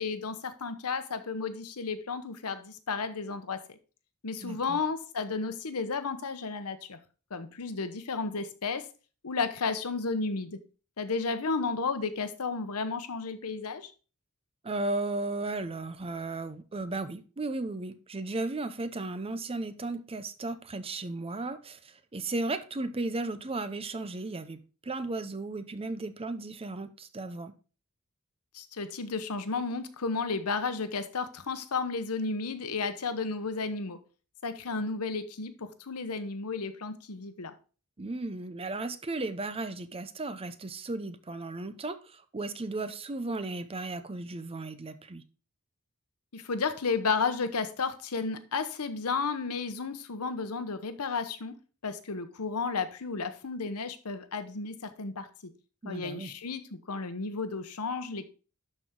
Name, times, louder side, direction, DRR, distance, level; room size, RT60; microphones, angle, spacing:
voice 1, 0.0-3.8 4.2-7.0 7.3-8.9 9.2-10.6 11.0-13.9 28.5-34.0 34.4-37.5 46.3-51.6 51.8-55.5 55.8-58.3, left 4 dB, 80° left, 0.9 m, -33 dB
voice 2, 4.4-4.8 14.6-27.5 38.0-45.2 55.8-56.3, right 2 dB, 25° right, 0.6 m, -35 dB
12.0 x 4.5 x 3.7 m
head